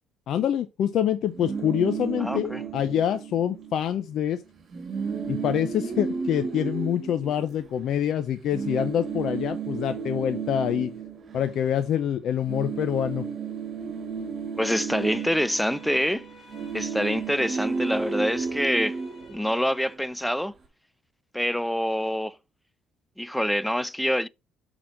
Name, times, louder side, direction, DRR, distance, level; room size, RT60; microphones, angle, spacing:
voice 1, 0.3-4.4 5.3-10.9 11.3-13.2, left 10 dB, 65° left, 0.6 m, -26 dB
sound 1, 1.3-3.9 4.2-4.3 4.6-8.0 8.5-12.1 12.3-19.9, right 5 dB, 40° right, 2.2 m, -33 dB
voice 2, 2.2-2.6 14.6-16.2 16.7-19.0 19.3-20.5 21.3-22.4 23.2-24.3, equal, ahead, 0.4 m, -26 dB
sound 2, 14.9-19.9, equal, 20° left, 2.5 m, -51 dB
5.9 x 4.0 x 4.9 m
cardioid pair, 95°, 0 cm